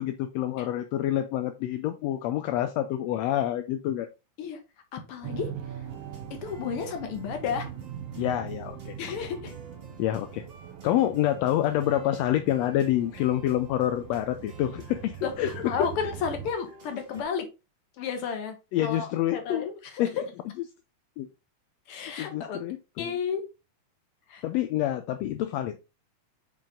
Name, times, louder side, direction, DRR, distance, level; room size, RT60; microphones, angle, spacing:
voice 1, 0.0-4.1 8.2-8.9 10.0-10.4 10.8-16.1 18.7-19.7 20.0-20.2 21.2-21.3 22.2-23.2 24.4-25.9, left 12 dB, 75° left, 8 dB, 1.6 m, -27 dB
voice 2, 4.9-5.5 6.4-7.7 9.0-9.5 15.2-17.5 18.0-18.6 18.8-19.1 19.3-20.0 21.9-22.6 23.0-23.4 24.3-24.4, left 6 dB, 55° left, 5 dB, 1.9 m, -32 dB
sound 1, 5.2-16.5, right 10 dB, 70° right, 1.6 m, -42 dB
sound 2, 5.9-17.2, right 2 dB, 25° right, 1.4 m, -51 dB
5.3 x 5.3 x 3.7 m, 0.27 s
omnidirectional pair, 3.4 m